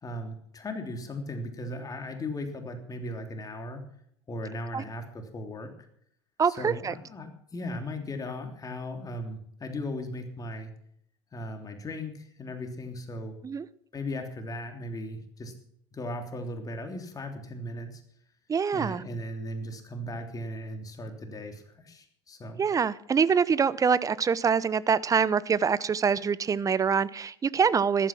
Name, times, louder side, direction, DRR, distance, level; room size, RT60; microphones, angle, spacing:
voice 1, 0.0-3.9 4.3-5.7 6.4-10.7 11.3-13.4 13.9-15.5 15.9-18.0 18.7-22.6, left 1 dB, 25° left, 5 dB, 3.2 m, -37 dB
voice 2, 6.4-6.9 13.4-13.7 18.5-19.0 22.6-28.1, right 6 dB, 25° right, 19 dB, 0.8 m, -25 dB
14.5 x 12.5 x 6.0 m, 0.66 s
hypercardioid pair, 75°, 14 cm